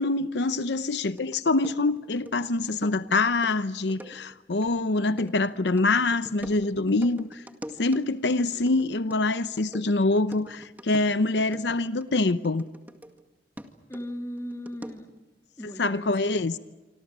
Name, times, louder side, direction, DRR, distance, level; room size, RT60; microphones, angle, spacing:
voice 1, 0.0-7.4 7.8-12.6 15.6-16.6, left 2 dB, 75° left, 0.8 m, -25 dB
sound 1, 1.0-13.2 13.6-15.2, equal, 10° right, 2.0 m, -45 dB
voice 2, 13.9-15.1 15.6-16.4, equal, 15° left, 2.1 m, -38 dB
27.0 x 25.5 x 7.4 m
head